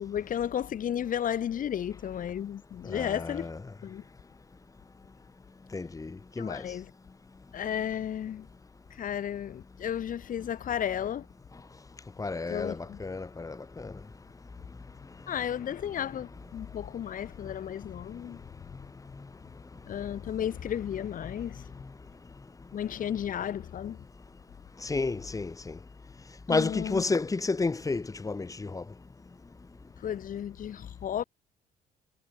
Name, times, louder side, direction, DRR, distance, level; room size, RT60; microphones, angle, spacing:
voice 1, 0.0-3.5 3.8-4.0 6.4-6.9 7.5-8.5 8.9-11.3 12.5-13.0 15.3-18.4 19.9-21.7 22.7-24.0 26.5-27.0 30.0-31.2, left 9 dB, 55° left, 7.5 m, -33 dB
voice 2, 2.9-3.5 5.7-6.6 12.2-13.9 24.8-25.8 26.5-28.8, left 3 dB, 20° left, 7.4 m, -31 dB
cardioid pair, 110°, 17 cm